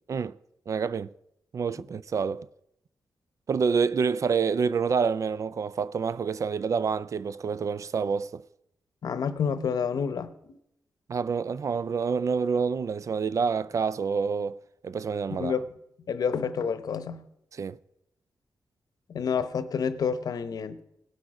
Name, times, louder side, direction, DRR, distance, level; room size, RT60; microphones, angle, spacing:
voice 1, 0.7-1.1 1.5-2.5 3.5-8.4 11.1-15.5 17.5-17.8, right 5 dB, 50° right, 0.4 m, -27 dB
voice 2, 9.0-10.6 15.3-15.7 16.1-17.3 19.1-20.8, left 6 dB, 70° left, 0.8 m, -29 dB
18.0 x 6.1 x 4.8 m
cardioid pair, 90°, 7 cm